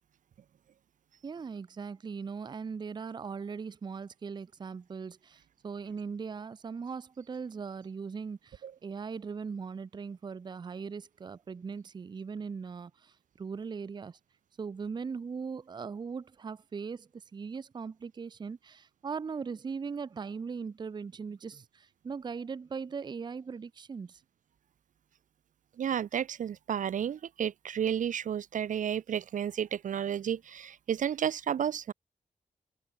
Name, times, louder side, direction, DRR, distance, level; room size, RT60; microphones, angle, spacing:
voice 1, 1.2-14.2 14.6-24.2, right 5 dB, 35° right, 0.5 m, -39 dB
voice 2, 25.8-31.9, right 9 dB, 75° right, 0.6 m, -32 dB
wide cardioid pair, 145°, 13 cm